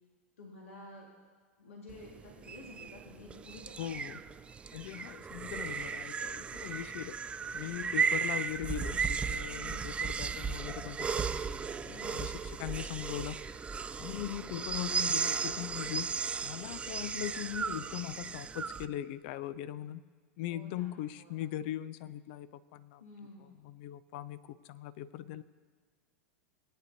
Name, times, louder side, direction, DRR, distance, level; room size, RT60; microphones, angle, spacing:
voice 1, 0.4-1.1 1.6-4.4 9.4-10.0 11.9-12.4 20.5-21.5 23.0-23.6, left 2 dB, 75° left, -2 dB, 1.9 m, -51 dB
sound 1, 1.9-18.9, right 6 dB, 15° right, 0.3 m, -35 dB
voice 2, 3.8-4.2 4.7-7.2 7.5-12.3 12.6-13.4 14.0-16.1 16.4-20.0 20.4-23.0 23.6-25.4, left 12 dB, 55° left, 15 dB, 0.5 m, -40 dB
19.5 x 9.6 x 2.8 m, 1.5 s
hypercardioid pair, 95°, 7 cm